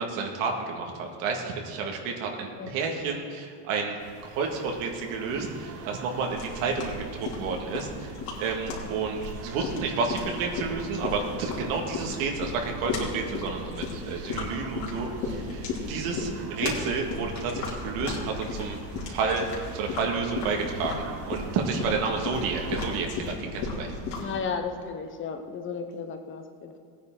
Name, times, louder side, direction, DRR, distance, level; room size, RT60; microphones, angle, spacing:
voice 1, 0.0-4.0 4.2-18.8 19.1-19.5 19.7-23.9, right 4 dB, 80° right, 1 dB, 2.0 m, -30 dB
sound 1, 4.0-23.1, right 7 dB, 35° right, 0.8 m, -45 dB
sound 2, 6.4-24.4, left 3 dB, 65° left, 3.2 m, -35 dB
voice 2, 24.2-26.8, left 5 dB, 30° left, 6 dB, 1.0 m, -34 dB
17.5 x 9.5 x 3.9 m, 2.1 s
cardioid pair, 145°, 41 cm